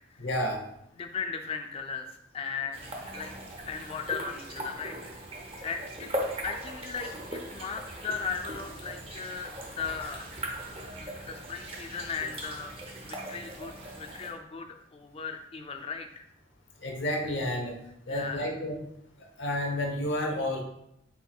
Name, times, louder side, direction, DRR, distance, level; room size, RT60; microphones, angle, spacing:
voice 1, 0.2-0.6 10.8-11.0 16.8-17.8 18.1-18.8 19.2-20.6, left 1 dB, 70° left, 1 dB, 0.7 m, -31 dB
voice 2, 0.9-2.1 2.3-3.3 3.7-5.0 5.6-6.1 6.4-10.3 11.0-12.7 13.0-16.3 18.1-18.5, left 5 dB, 30° left, 6 dB, 0.3 m, -37 dB
sound 1, 2.7-14.3, right 1 dB, 30° right, 0.6 m, -39 dB
4.4 x 3.8 x 2.3 m, 0.79 s
head